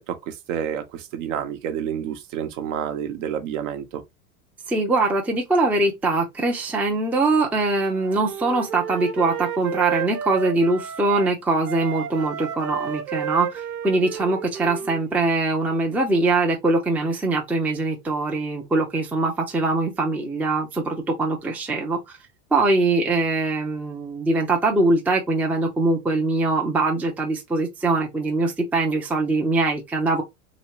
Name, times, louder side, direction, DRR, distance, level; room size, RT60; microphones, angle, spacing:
voice 1, 0.1-4.0, right 9 dB, 55° right, 0.9 m, -29 dB
voice 2, 4.7-22.0 22.5-30.2, right 2 dB, 5° right, 0.5 m, -22 dB
Wind instrument woodwind instrument, 7.8-11.3 11.6-15.4, right 8 dB, 80° right, 0.8 m, -32 dB
3.0 x 3.0 x 2.9 m
figure-of-eight pair, 95°, 45 cm